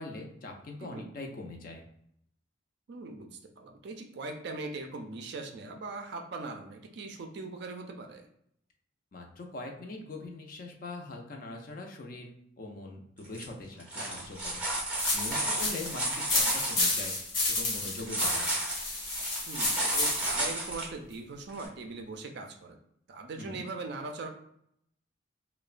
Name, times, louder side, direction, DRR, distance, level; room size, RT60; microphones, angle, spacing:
voice 1, 0.0-1.9 9.1-12.3 12.6-17.1 17.5-18.5 23.4-23.6, left 2 dB, 45° left, 2 dB, 0.4 m, -42 dB
voice 2, 2.9-8.3 13.9-14.3 15.5-15.7 19.5-22.8 23.1-24.3, right 3 dB, 55° right, 5 dB, 0.4 m, -41 dB
sound 1, 13.2-13.4 13.8-16.8 18.0-20.9 21.6-21.7, right 1 dB, 5° right, 0.5 m, -32 dB
sound 2, 15.0-20.5, left 2 dB, 70° left, 0.9 m, -31 dB
2.9 x 2.1 x 2.4 m, 0.72 s
head